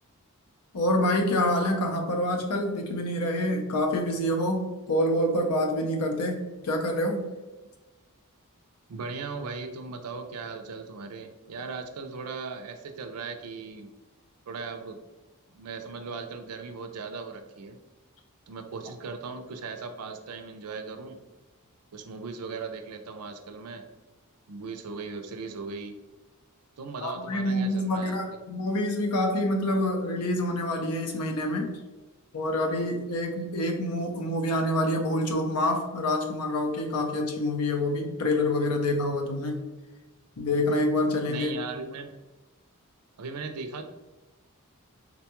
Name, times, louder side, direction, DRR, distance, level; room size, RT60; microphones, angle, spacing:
voice 1, 0.7-7.3 27.0-31.8 32.3-39.7 40.4-41.5, left 1 dB, 85° left, 3 dB, 0.6 m, -27 dB
voice 2, 8.9-13.9 14.5-15.0 15.5-17.8 18.5-21.2 21.9-23.8 24.5-26.0 26.8-28.2 41.2-42.1 43.2-43.8, right 4 dB, 85° right, 7 dB, 0.4 m, -38 dB
3.8 x 2.2 x 2.9 m, 1.1 s
head